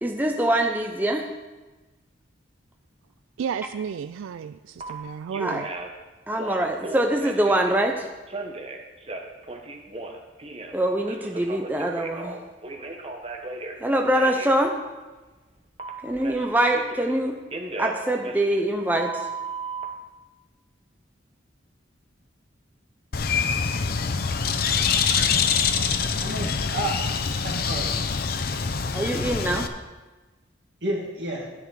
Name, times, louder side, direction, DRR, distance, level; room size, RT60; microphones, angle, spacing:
voice 1, 0.0-1.3 5.4-5.6 6.3-8.1 10.7-12.4 13.8-14.7 16.0-17.4 17.8-19.3 28.9-29.7, right 1 dB, 10° right, 2 dB, 0.6 m, -24 dB
voice 2, 3.4-5.7, right 7 dB, 90° right, 12 dB, 0.3 m, -32 dB
Telephone, 4.8-4.9 5.3-6.0 6.3-7.7 8.3-10.8 11.1-13.8 14.1-14.5 15.8-17.2 17.5-19.8, right 3 dB, 30° right, 1.0 m, -36 dB
Bird, 23.1-29.7, left 6 dB, 50° left, 0.6 m, -25 dB
voice 3, 26.2-27.1 27.4-27.9 30.8-31.5, right 1 dB, 60° right, -1 dB, 2.3 m, -31 dB
10.5 x 9.9 x 4.7 m, 1.2 s
head